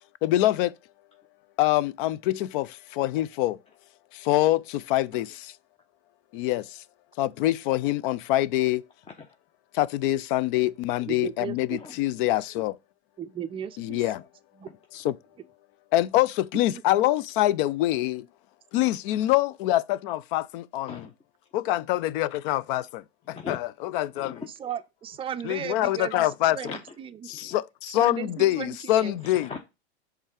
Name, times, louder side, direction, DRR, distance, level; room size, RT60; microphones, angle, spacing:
voice 1, 0.2-0.7 1.6-3.6 4.1-5.5 6.3-6.8 7.2-8.8 9.7-12.8 13.8-14.2 14.9-15.1 15.9-18.3 18.7-21.0 21.5-24.4 25.4-26.6 27.3-29.5, left 15 dB, 50° left, 0.6 m, -25 dB
voice 2, 11.0-11.8 13.2-14.0 14.6-14.7 16.7-16.8 24.6-27.3 27.9-29.2, right 9 dB, 15° right, 0.5 m, -36 dB
voice 3, 23.2-23.6 24.1-24.5 26.6-26.9 27.3-27.6 29.3-29.6, left 4 dB, 20° left, 0.8 m, -40 dB
5.5 x 3.8 x 4.7 m
hypercardioid pair, 115°, 33 cm